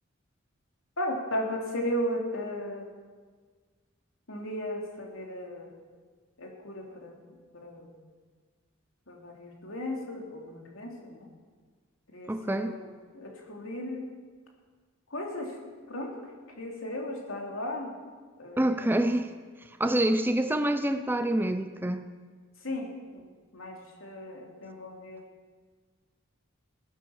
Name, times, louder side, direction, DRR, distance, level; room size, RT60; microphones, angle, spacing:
voice 1, 1.0-2.8 4.3-5.7 6.4-7.2 7.5-7.9 9.1-11.3 12.1-14.1 15.1-15.6 15.9-16.1 16.6-17.9 18.4-18.7 22.6-23.2 23.5-25.2, left 1 dB, 85° left, 0 dB, 3.2 m, -35 dB
voice 2, 12.3-12.8 18.6-19.3 19.8-22.1, right 1 dB, 10° right, 9 dB, 0.6 m, -26 dB
17.0 x 10.5 x 7.2 m, 1.5 s
head